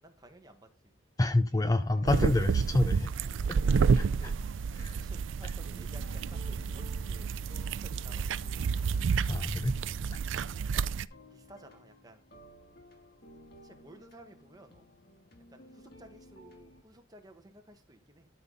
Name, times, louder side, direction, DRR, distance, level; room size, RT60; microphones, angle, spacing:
voice 1, 0.0-0.9 2.6-3.1 4.9-7.3 7.8-8.4 10.5-11.0 11.3-12.2 13.6-14.8 15.5-18.3, right 1 dB, 20° right, 1.3 m, -55 dB
voice 2, 1.2-3.1 3.9-4.3 4.8-5.0 9.3-9.8 10.1-10.2, left 2 dB, 20° left, 0.4 m, -28 dB
sound 1, 1.5-16.8, left 1 dB, 55° left, 1.6 m, -57 dB
sound 2, 2.1-11.1, right 5 dB, 75° right, 0.4 m, -30 dB
12.5 x 5.6 x 3.8 m
head